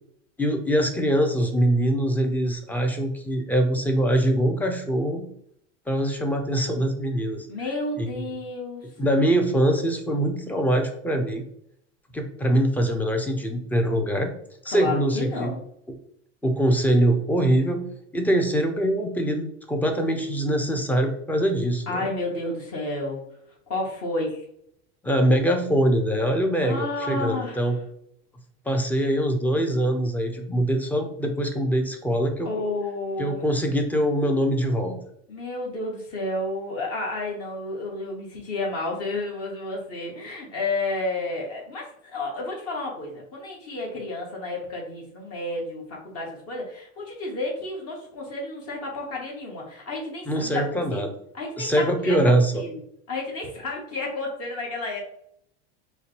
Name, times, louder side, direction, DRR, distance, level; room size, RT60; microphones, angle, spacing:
voice 1, 0.4-5.2 5.9-7.5 8.0-8.3 9.0-11.4 12.1-14.3 14.6-15.5 16.4-17.8 18.1-22.1 25.0-27.8 28.7-32.5 33.2-35.0 50.3-51.1 51.6-52.6, right 1 dB, 5° left, 4 dB, 0.5 m, -23 dB
voice 2, 7.5-8.9 14.7-15.6 21.9-23.2 23.7-24.4 26.6-27.7 32.4-33.4 35.3-51.1 51.3-52.8 53.1-55.0, left 2 dB, 45° left, -1 dB, 1.4 m, -31 dB
5.5 x 2.2 x 3.1 m, 0.71 s
supercardioid pair, 125°, 34 cm